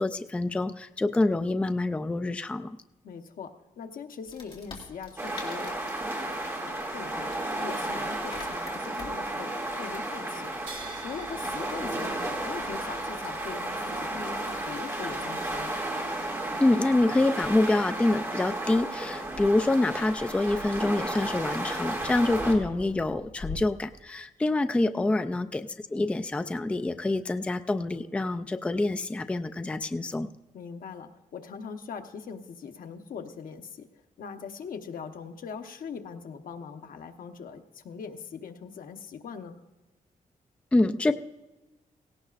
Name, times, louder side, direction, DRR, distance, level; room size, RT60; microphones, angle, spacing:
voice 1, 0.0-2.8 16.6-30.3 40.7-41.1, left 2 dB, 10° left, 8 dB, 0.3 m, -26 dB
voice 2, 3.0-5.9 6.6-10.5 11.0-15.7 24.9-25.1 30.5-33.9 34.2-39.6, left 6 dB, 80° left, 6 dB, 1.0 m, -41 dB
Wood, 4.3-23.6, left 4 dB, 40° left, 2.6 m, -48 dB
sound 1, 5.2-22.5, right 1 dB, 20° right, 2.4 m, -33 dB
sound 2, 10.7-17.6, right 4 dB, 75° right, 3.4 m, -50 dB
17.5 x 17.5 x 2.5 m, 1.1 s
wide cardioid pair, 170°, 14 cm